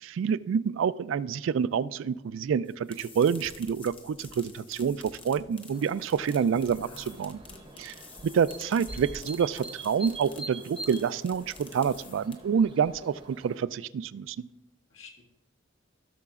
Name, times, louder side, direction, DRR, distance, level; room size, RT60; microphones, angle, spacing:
voice 1, 0.0-7.4 7.8-7.9 8.2-14.4, right 7 dB, 75° right, 16 dB, 0.3 m, -28 dB
sound 1, 2.6-12.6, left 4 dB, 25° left, 0.9 m, -50 dB
sound 2, 5.7-13.6, right 2 dB, 25° right, 0.7 m, -45 dB
voice 2, 6.8-7.9 14.9-15.2, left 3 dB, 85° left, 0 dB, 1.6 m, -52 dB
15.5 x 6.7 x 2.4 m, 0.94 s
head